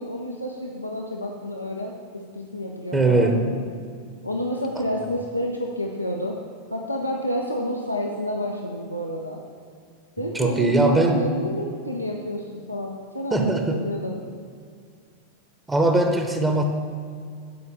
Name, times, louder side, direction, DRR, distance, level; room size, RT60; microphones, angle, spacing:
voice 1, 0.0-3.6 4.2-6.4 6.7-9.4 10.2-14.2, equal, 90° left, 0 dB, 0.7 m, -29 dB
voice 2, 2.9-3.4 10.2-11.3 13.3-13.8 15.7-16.6, right 2 dB, 10° right, 4 dB, 0.9 m, -20 dB
9.5 x 5.3 x 6.5 m, 2.2 s
figure-of-eight pair, 90°, 0 cm